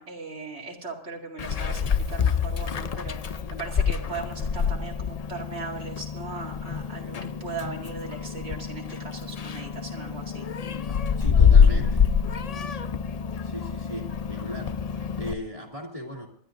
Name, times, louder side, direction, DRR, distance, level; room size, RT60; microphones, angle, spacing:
voice 1, 0.0-10.5 12.5-12.8, right 4 dB, 80° right, 0 dB, 2.6 m, -38 dB
Meow, 1.4-15.3, left 6 dB, 45° left, 0.6 m, -25 dB
voice 2, 11.2-12.1 13.4-16.3, equal, 30° right, 0 dB, 2.2 m, -37 dB
28.0 x 11.5 x 2.6 m, 0.69 s
omnidirectional pair, 1.1 m